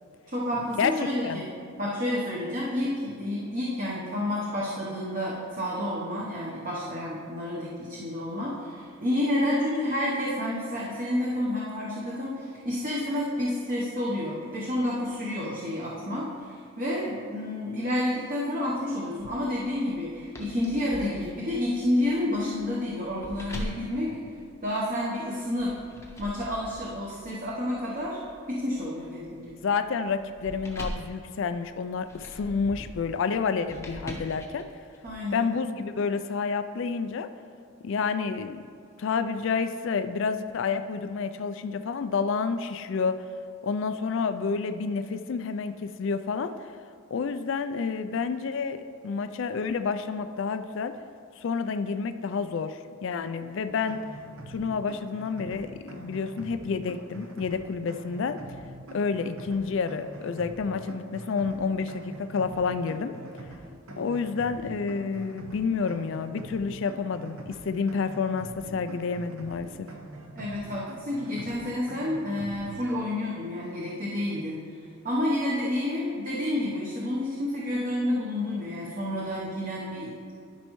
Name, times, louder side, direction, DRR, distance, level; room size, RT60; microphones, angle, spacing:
voice 1, 0.3-1.5 1.8-24.2 24.6-25.8 26.2-28.2 28.5-29.5 35.0-35.5 70.4-80.3, left 1 dB, 40° right, -5 dB, 0.9 m, -30 dB
sound 1, 19.2-25.0 25.6-35.1, equal, 15° left, 0.7 m, -43 dB
voice 2, 29.6-34.7 35.3-37.3 37.8-38.7 39.0-43.2 43.6-46.5 47.1-50.9 51.4-54.0 54.5-58.4 58.9-63.1 64.0-69.9, left 5 dB, 60° left, 10 dB, 0.3 m, -29 dB
sound 2, 53.7-73.0, right 2 dB, 75° right, 0.9 m, -44 dB
12.0 x 5.4 x 3.1 m, 2.4 s
head